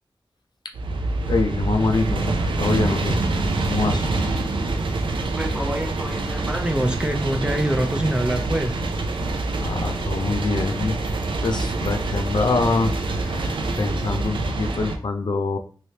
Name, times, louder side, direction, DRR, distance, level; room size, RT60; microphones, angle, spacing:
sound 1, 0.7-15.0, right 2 dB, 90° right, 0.4 m, -25 dB
voice 1, 1.3-4.1 9.6-11.0 11.4-15.6, left 3 dB, 60° left, 5 dB, 0.4 m, -25 dB
voice 2, 5.3-8.8, right 1 dB, 10° right, 5 dB, 0.5 m, -25 dB
3.1 x 3.0 x 2.8 m, 0.39 s
wide cardioid pair, 65°, 8 cm